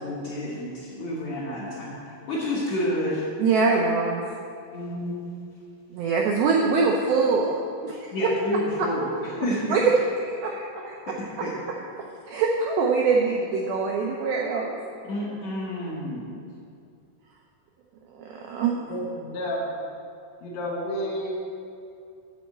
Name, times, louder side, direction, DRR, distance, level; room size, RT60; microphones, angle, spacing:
voice 1, 0.0-3.2 4.7-5.3 8.1-9.0 9.3-9.8 11.1-11.2 11.4-11.5 15.1-16.4, left 1 dB, 65° left, -8 dB, 1.7 m, -29 dB
voice 2, 3.4-4.2 5.9-7.6 7.8-8.1 9.7-9.8 10.2-11.5 12.3-14.8 18.1-18.8, right 4 dB, 90° right, -1 dB, 2.1 m, -24 dB
voice 3, 18.9-19.8 20.4-21.3, equal, 85° left, -3 dB, 3.8 m, -30 dB
10.5 x 4.4 x 7.8 m, 2.5 s
omnidirectional pair, 5.2 m